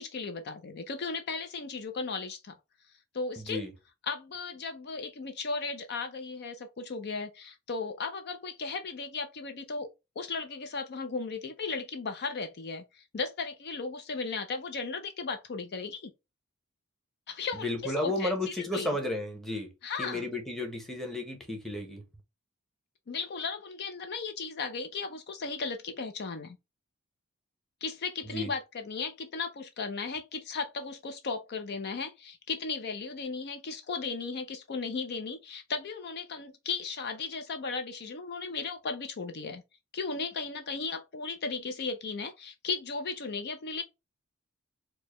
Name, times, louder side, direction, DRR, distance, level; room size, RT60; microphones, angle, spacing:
voice 1, 0.0-2.5 3.1-3.6 4.0-9.9 10.2-16.1 17.3-19.0 19.8-20.3 23.1-26.6 27.8-39.6 39.9-43.8, left 4 dB, 50° left, 0.5 m, -36 dB
voice 2, 17.6-19.7 20.0-22.0 28.3-28.5, left 1 dB, ahead, 0.9 m, -33 dB
4.5 x 2.2 x 3.0 m
head